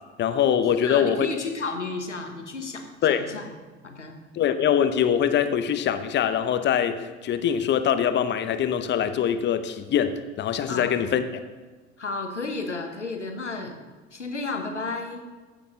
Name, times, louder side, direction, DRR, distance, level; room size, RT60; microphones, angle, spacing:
voice 1, 0.2-1.3 3.0-3.3 4.3-11.2, left 9 dB, 30° left, 11 dB, 0.8 m, -23 dB
voice 2, 0.8-2.9 3.3-3.5 3.8-4.2 10.7-10.9 12.0-13.8 14.1-15.2, left 3 dB, 90° left, 4 dB, 1.1 m, -32 dB
14.5 x 6.8 x 3.8 m, 1.3 s
figure-of-eight pair, 70°, 35 cm